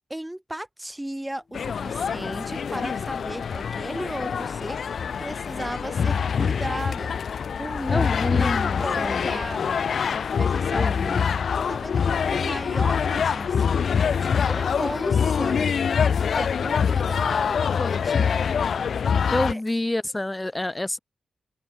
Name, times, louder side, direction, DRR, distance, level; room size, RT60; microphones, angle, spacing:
voice 1, 0.1-7.1 7.6-9.8 10.3-10.9 11.6-15.8 16.3-18.5 19.4-19.6, right 1 dB, 10° right, 4.0 m, -35 dB
sound 1, 1.2-4.5 4.8-15.1 15.8-15.9 16.4-19.7, left 4 dB, 50° left, 7.2 m, -49 dB
sound 2, 1.5-19.5, left 7 dB, 70° left, 2.7 m, -25 dB
voice 2, 7.9-9.4 10.7-11.4 19.3-21.0, left 1 dB, 20° left, 2.9 m, -28 dB
supercardioid pair, 40°, 0 cm